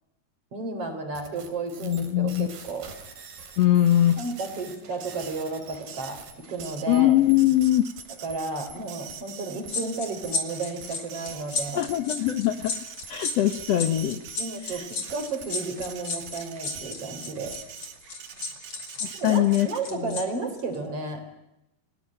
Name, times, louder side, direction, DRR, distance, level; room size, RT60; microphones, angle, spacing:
voice 1, 0.5-2.9 4.2-7.1 8.2-11.8 14.4-14.8 15.1-17.6 19.1-21.2, right 3 dB, 40° right, 6 dB, 4.7 m, -33 dB
sound 1, 1.1-18.0, right 4 dB, 80° right, 5.3 m, -48 dB
voice 2, 1.8-2.5 3.6-4.2 6.9-7.9 11.7-12.8 13.1-14.2 14.6-14.8 19.0-20.2, left 13 dB, 85° left, 9 dB, 1.4 m, -22 dB
Printer, 4.0-20.1, right 9 dB, 55° right, 2.4 m, -44 dB
sound 2, 9.7-20.2 20.5-20.8, left 4 dB, 40° left, 4.0 m, -33 dB
29.5 x 19.0 x 8.8 m, 0.89 s
omnidirectional pair, 4.5 m